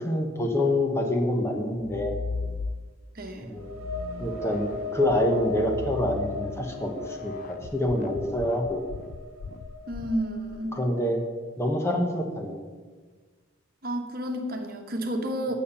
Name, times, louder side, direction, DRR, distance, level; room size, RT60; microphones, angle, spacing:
voice 1, 0.0-2.2 3.5-3.7 4.2-8.8 10.7-11.2 11.6-12.6, left 1 dB, 15° left, 2 dB, 0.9 m, -26 dB
sound 1, 1.8-3.2 3.7-10.6, left 4 dB, 40° left, 0.3 m, -38 dB
voice 2, 3.1-3.6 9.9-10.8 13.8-15.5, equal, 45° right, 3 dB, 1.2 m, -31 dB
sound 2, 3.4-11.0, left 2 dB, 90° right, 1.0 m, -37 dB
9.3 x 7.1 x 6.9 m, 1.4 s
head